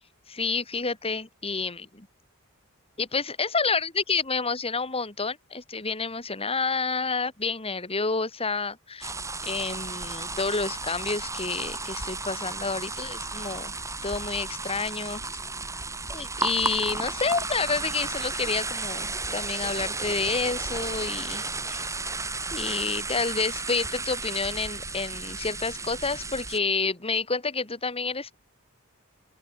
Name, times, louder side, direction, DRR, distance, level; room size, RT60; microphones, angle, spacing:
voice 1, 0.3-2.1 3.0-9.1 9.4-13.7 14.0-15.2 16.1-21.9 22.5-28.4, left 4 dB, 25° left, 2.9 m, -29 dB
sound 1, 9.0-26.6, right 3 dB, 15° right, 5.8 m, -33 dB
open air
head